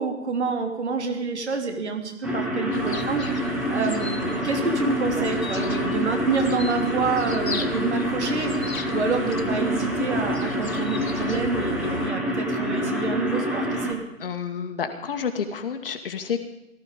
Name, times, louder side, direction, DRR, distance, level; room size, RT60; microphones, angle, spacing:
voice 1, 0.0-3.3 3.7-14.0, right 4 dB, 55° right, 4 dB, 3.2 m, -28 dB
sound 1, 2.2-13.9, equal, ahead, 0.9 m, -27 dB
sound 2, 2.7-12.1, left 4 dB, 85° left, 1.0 m, -36 dB
voice 2, 14.2-16.4, left 7 dB, 40° left, 7 dB, 1.9 m, -29 dB
18.5 x 13.5 x 5.3 m, 0.88 s
figure-of-eight pair, 140°, 40 cm